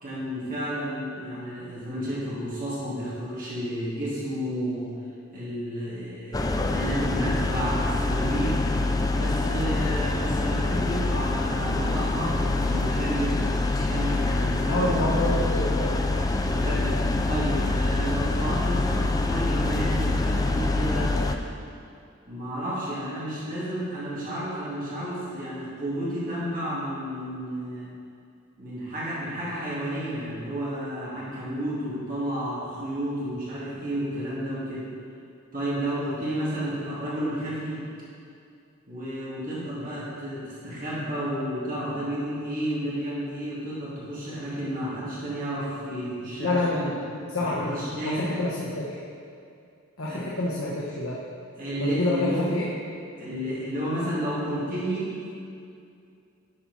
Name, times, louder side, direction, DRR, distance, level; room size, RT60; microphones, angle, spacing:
voice 1, 0.0-4.9 5.3-8.6 9.1-13.5 13.7-15.1 16.4-21.2 22.3-27.9 28.6-34.9 35.5-37.8 38.9-46.9 47.4-48.4 50.1-50.2 51.6-52.4 53.2-55.3, equal, 40° right, -8 dB, 2.3 m, -31 dB
sound 1, 6.3-21.4, left 2 dB, 20° left, 0.4 m, -25 dB
voice 2, 14.7-16.3 46.4-47.7 48.0-49.0 50.0-51.2 51.8-52.7, left 2 dB, 85° left, -5 dB, 1.1 m, -28 dB
10.5 x 6.0 x 4.1 m, 2.4 s
head